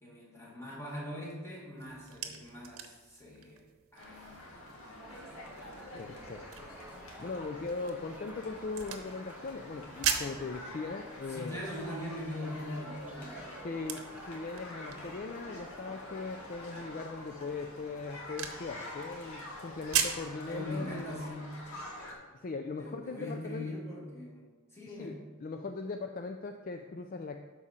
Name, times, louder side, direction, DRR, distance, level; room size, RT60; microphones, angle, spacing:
voice 1, 0.0-5.6 11.3-13.4 20.5-21.6 22.8-24.5 24.7-25.3, left 1 dB, 15° left, -3 dB, 1.9 m, -42 dB
sound 1, 1.8-20.3, right 8 dB, 75° right, 0.8 m, -41 dB
sound 2, 4.0-22.1, left 1 dB, 90° left, 1.9 m, -47 dB
sound 3, 5.0-17.1, right 2 dB, 5° right, 0.5 m, -53 dB
voice 2, 5.9-6.4 7.2-11.6 13.6-21.1 22.3-23.7 25.0-25.1 25.4-27.4, left 3 dB, 40° left, 6 dB, 0.4 m, -39 dB
12.5 x 4.8 x 4.2 m, 1.3 s
head